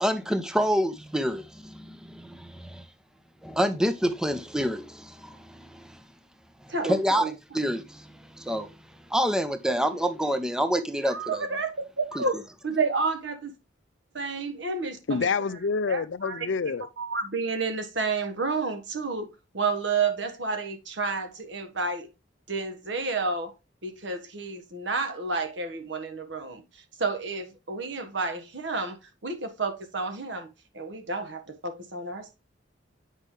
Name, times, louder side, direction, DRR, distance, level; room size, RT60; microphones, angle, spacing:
voice 1, 0.0-2.9 3.4-6.0 6.6-7.3 7.5-8.8 9.1-11.5 12.2-12.3, equal, 5° right, 0.5 m, -28 dB
voice 2, 6.7-7.3 11.0-13.5 14.1-15.3 15.9-16.5 17.0-22.1 22.5-23.5 23.8-32.4, right 4 dB, 65° right, 1.4 m, -31 dB
voice 3, 15.1-16.9, left 5 dB, 70° left, 0.5 m, -27 dB
8.1 x 5.5 x 3.2 m
head